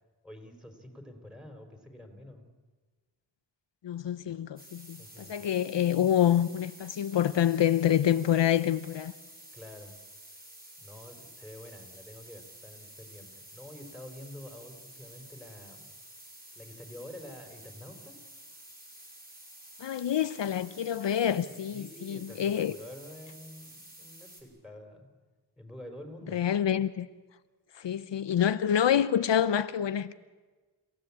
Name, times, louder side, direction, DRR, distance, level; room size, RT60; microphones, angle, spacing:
voice 1, 0.2-2.4 4.9-5.3 9.5-9.9 10.8-15.9 16.5-18.2 21.4-25.1 25.6-26.4, left 1 dB, ahead, 4.4 m, -48 dB
voice 2, 3.8-9.1 19.8-22.8 26.3-27.1 27.8-30.1, left 10 dB, 75° left, 0.7 m, -27 dB
sound 1, 4.6-24.4, right 1 dB, 20° right, 5.5 m, -51 dB
29.5 x 16.0 x 8.6 m
wide cardioid pair, 90°, 43 cm